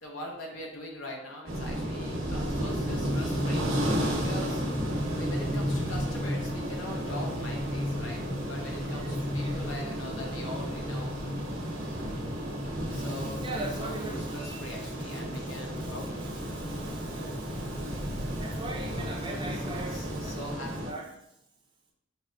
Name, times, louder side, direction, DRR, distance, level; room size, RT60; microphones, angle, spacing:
voice 1, 0.0-4.6 5.1-11.2 11.8-12.3 12.6-16.1 19.9-20.8, left 1 dB, 65° left, 0 dB, 0.9 m, -42 dB
sound 1, 1.5-20.9, equal, 70° right, 1.0 m, -33 dB
sound 2, 2.7-16.5, left 1 dB, 25° left, 0.7 m, -36 dB
voice 2, 5.0-5.4 8.9-9.1 9.4-9.6 12.9-21.1, right 2 dB, 25° right, 0 dB, 0.5 m, -42 dB
4.7 x 3.2 x 2.4 m, 0.79 s
head